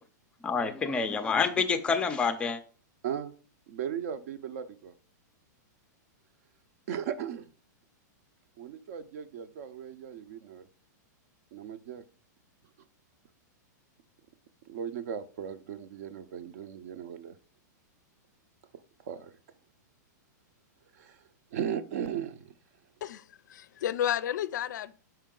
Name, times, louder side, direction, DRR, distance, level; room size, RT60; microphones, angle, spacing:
voice 1, 0.4-2.6, left 5 dB, 10° left, 0.4 m, -27 dB
voice 2, 3.7-4.9 6.9-7.5 8.6-10.7 11.5-12.0 14.7-17.4 19.0-19.3 20.9-21.2 21.5-22.5, right 9 dB, 55° right, 0.6 m, -37 dB
voice 3, 23.0-24.9, left 10 dB, 75° left, 0.4 m, -32 dB
5.5 x 4.5 x 3.7 m
supercardioid pair, 160°, 10 cm